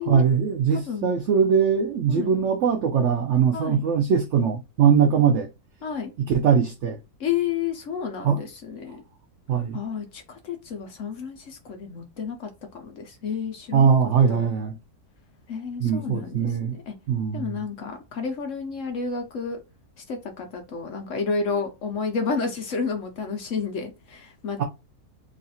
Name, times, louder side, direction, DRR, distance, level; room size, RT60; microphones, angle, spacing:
voice 1, 0.0-5.5 6.2-7.0 8.2-8.4 9.5-9.8 13.7-14.7 15.8-16.8 17.1-17.6 24.6-24.7, right 7 dB, 65° right, 0.7 m, -21 dB
voice 2, 0.7-1.2 2.1-2.3 3.5-3.8 5.8-6.1 7.2-9.0 9.7-13.9 14.3-14.5 15.5-16.9 17.3-19.6 20.1-24.6, left 5 dB, 60° left, 1.0 m, -31 dB
3.1 x 2.5 x 4.0 m
omnidirectional pair, 1.7 m